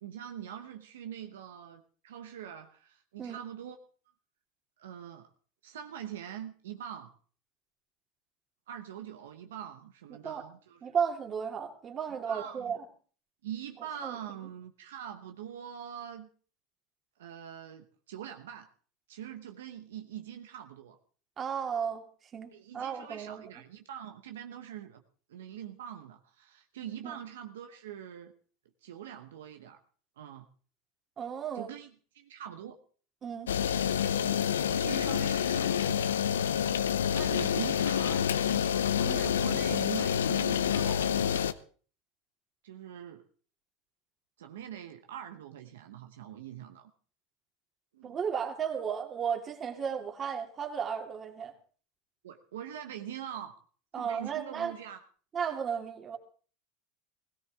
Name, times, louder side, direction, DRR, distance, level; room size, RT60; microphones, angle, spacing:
voice 1, 0.0-3.8 4.8-5.3 5.6-7.1 8.7-10.8 12.3-12.7 13.4-16.3 17.2-18.7 19.1-21.0 22.5-25.0 25.3-28.3 28.8-29.8 30.2-30.5 31.5-32.8 34.2-36.2 37.1-41.2 42.6-43.2 44.4-46.9 47.9-48.2 52.2-53.6 53.9-55.0, right 10 dB, 85° right, 6 dB, 1.0 m, -43 dB
voice 2, 10.1-10.4 10.8-12.9 14.0-14.2 21.4-22.1 22.3-23.4 27.0-27.2 31.2-31.7 33.2-33.5 33.9-34.1 39.0-39.2 48.0-51.5 53.9-54.7 55.3-56.2, right 7 dB, 35° right, 3 dB, 2.6 m, -34 dB
sound 1, 33.5-41.5, left 8 dB, 90° left, 0.6 m, -28 dB
17.5 x 16.5 x 3.6 m, 0.42 s
hypercardioid pair, 95°, 0 cm